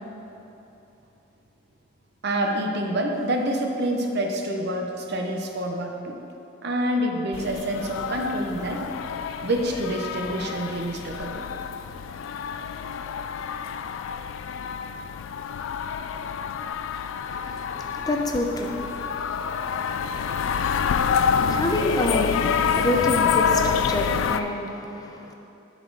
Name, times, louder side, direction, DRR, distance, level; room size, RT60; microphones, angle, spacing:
voice 1, 2.2-6.2 6.6-8.8 9.4-11.5, right 1 dB, 55° right, 2 dB, 0.8 m, -27 dB
sound 1, 7.3-24.4, left 7 dB, 70° left, 0.3 m, -27 dB
voice 2, 17.2-25.3, left 1 dB, 20° left, 1 dB, 0.6 m, -29 dB
11.5 x 4.2 x 4.7 m, 2.9 s
head